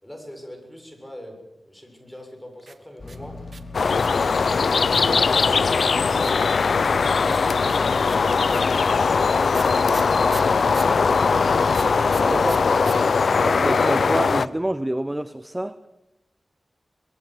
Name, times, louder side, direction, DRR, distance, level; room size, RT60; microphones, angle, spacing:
voice 1, 0.0-3.4 12.0-12.5, left 1 dB, 5° left, 2 dB, 7.2 m, -41 dB
sound 1, 2.6-4.3 4.9-6.5 7.3-11.0 11.7-13.0 13.2-13.3 13.5-14.0, right 4 dB, 60° right, 2.0 m, -41 dB
sound 2, 3.0-12.7, left 2 dB, 40° left, 2.9 m, -38 dB
sound 3, 3.7-14.5, left 5 dB, 75° left, 0.8 m, -20 dB
voice 2, 13.4-15.8, right 1 dB, 15° right, 13 dB, 0.9 m, -27 dB
24.0 x 21.5 x 8.0 m, 0.90 s
wide cardioid pair, 110°, 0 cm